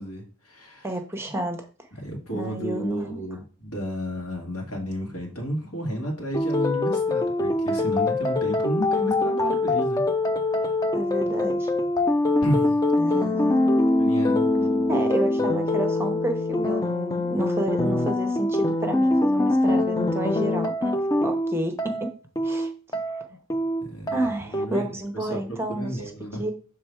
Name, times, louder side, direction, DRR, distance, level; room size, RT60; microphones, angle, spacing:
voice 1, 0.0-0.9 2.0-10.0 10.6-10.7 12.4-12.8 14.0-15.0 23.8-24.9 25.1-26.4, equal, 85° left, 0 dB, 2.2 m, -32 dB
voice 2, 0.8-1.7 2.3-3.2 10.9-11.7 13.0-13.8 14.8-21.0 21.2-22.1 22.4-22.7 23.0-23.2 24.1-26.5, right 1 dB, 10° right, 5 dB, 0.7 m, -30 dB
sound 1, 6.3-24.6, left 2 dB, 15° left, 0.4 m, -24 dB
6.8 x 3.6 x 4.6 m, 0.38 s
head